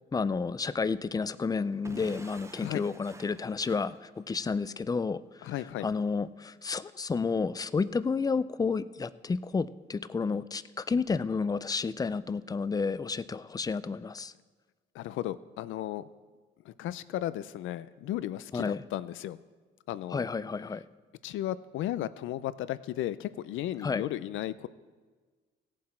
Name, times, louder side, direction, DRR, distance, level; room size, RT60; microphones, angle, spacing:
voice 1, 0.1-5.5 5.8-14.3 18.5-18.8 20.1-20.8 23.8-24.0, left 4 dB, 20° left, 16 dB, 0.4 m, -31 dB
Explosion / Shatter, 1.8-4.6, right 2 dB, 15° right, 0.7 m, -48 dB
voice 2, 5.4-5.9 14.9-16.1 16.7-19.4 19.9-20.3 21.2-24.7, left 13 dB, 80° left, 16 dB, 0.5 m, -35 dB
17.0 x 7.4 x 4.4 m, 1.4 s
cardioid pair, 90°, 20 cm